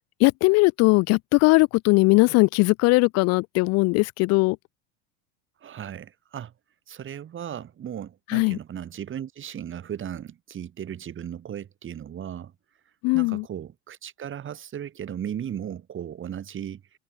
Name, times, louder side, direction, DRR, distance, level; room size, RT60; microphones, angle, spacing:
voice 1, 0.2-4.6 8.3-8.6 13.0-13.4, left 25 dB, 50° left, 0.5 m, -19 dB
voice 2, 5.6-6.5 6.9-12.5 13.1-16.8, right 9 dB, 35° right, 5.7 m, -36 dB
hypercardioid pair, 100°, 34 cm